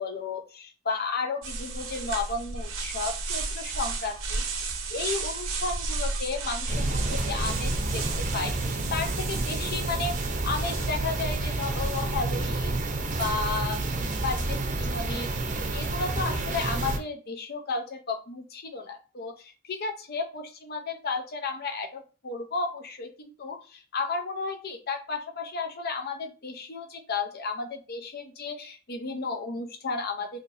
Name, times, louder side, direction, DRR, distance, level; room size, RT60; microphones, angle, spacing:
voice 1, 0.0-4.4 4.9-10.1 10.4-12.8 13.2-30.4, left 4 dB, 50° left, 4 dB, 0.7 m, -33 dB
sound 1, 1.4-13.9, right 3 dB, 80° right, 0.8 m, -34 dB
sound 2, 6.7-17.0, right 2 dB, 40° right, 0.7 m, -29 dB
4.3 x 2.9 x 2.6 m, 0.35 s
head